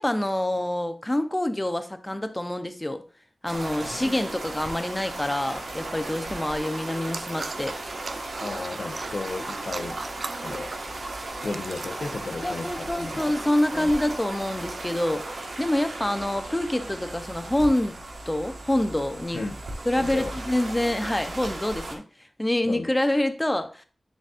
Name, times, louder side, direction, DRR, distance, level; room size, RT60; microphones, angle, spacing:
voice 1, 0.0-3.0 3.4-7.7 12.4-18.0 18.3-19.4 19.9-22.0 22.4-23.8, left 1 dB, 15° left, 9 dB, 0.6 m, -26 dB
sound 1, 3.5-22.0, right 2 dB, 80° right, 1.4 m, -36 dB
voice 2, 3.8-4.2 8.4-10.0 10.4-10.7 11.4-13.2 13.7-13.9 19.3-19.6 20.0-20.3 22.7-22.9, left 3 dB, 60° left, 7 dB, 0.7 m, -34 dB
sound 2, 6.9-12.2, right 4 dB, 60° right, 0.4 m, -39 dB
9.6 x 4.1 x 2.5 m, 0.37 s
wide cardioid pair, 115°, 0 cm